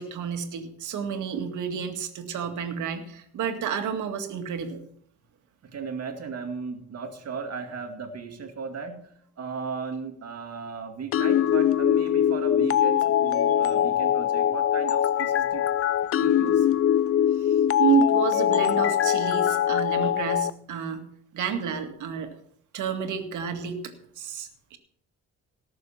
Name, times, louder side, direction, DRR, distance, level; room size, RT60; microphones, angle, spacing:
voice 1, 0.0-4.8 17.4-21.1 21.3-22.3 22.7-24.8, right 7 dB, 75° right, 6 dB, 2.1 m, -30 dB
voice 2, 5.6-9.1 9.4-15.6 16.2-16.7, right 5 dB, 55° right, 6 dB, 2.3 m, -36 dB
sound 1, 11.1-20.5, left 10 dB, 50° left, 0.5 m, -22 dB
18.0 x 6.9 x 5.8 m, 0.67 s
cardioid pair, 90°, 30 cm